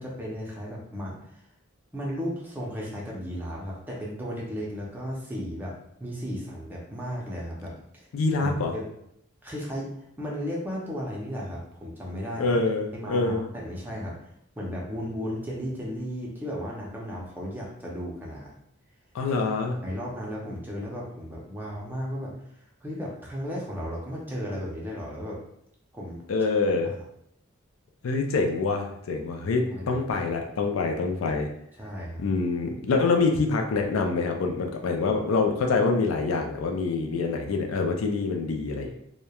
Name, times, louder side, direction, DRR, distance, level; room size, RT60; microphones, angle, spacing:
voice 1, 0.0-1.4 1.9-5.7 6.0-8.1 8.4-8.9 9.4-12.6 12.9-14.3 14.6-18.5 19.3-19.4 19.8-22.3 22.8-25.4 25.9-26.2 26.8-26.9 29.6-30.0 31.8-32.2, equal, 10° right, -4 dB, 0.5 m, -35 dB
voice 2, 8.1-8.7 12.4-13.5 19.1-19.8 26.3-26.9 28.0-31.5 32.2-39.0, left 3 dB, 80° left, 3 dB, 0.4 m, -25 dB
2.9 x 2.1 x 2.3 m, 0.73 s
head